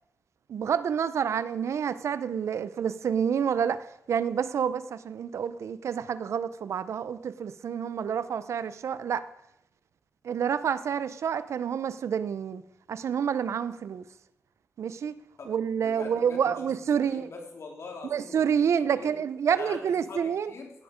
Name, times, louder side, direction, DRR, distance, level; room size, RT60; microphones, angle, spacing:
voice 1, 0.5-9.3 10.2-12.6 12.9-14.1 14.8-15.1 15.5-17.3 18.1-20.5, right 7 dB, 85° right, 0.6 m, -28 dB
voice 2, 15.4-18.6 19.0-19.1 19.5-20.8, left 3 dB, 70° left, 2.8 m, -43 dB
15.5 x 9.4 x 5.1 m
cardioid pair, 70°, 5 cm